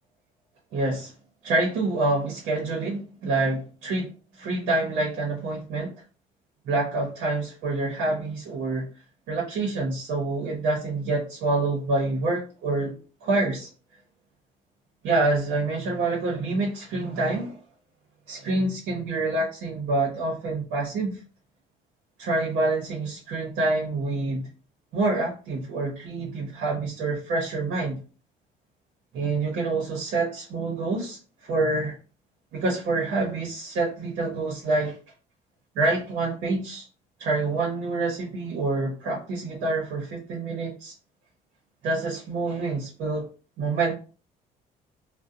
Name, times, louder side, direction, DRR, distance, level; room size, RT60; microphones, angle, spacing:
voice 1, 0.7-1.1 1.4-5.9 6.6-8.9 9.3-12.9 13.2-13.7 15.0-17.6 18.3-21.2 22.2-24.5 24.9-28.0 29.1-32.0 32.5-34.9 35.8-36.9 37.2-40.9 41.8-43.3 43.6-43.9, right 2 dB, 75° right, -3 dB, 0.8 m, -27 dB
2.6 x 2.1 x 2.4 m, 0.36 s
cardioid pair, 110°, 17 cm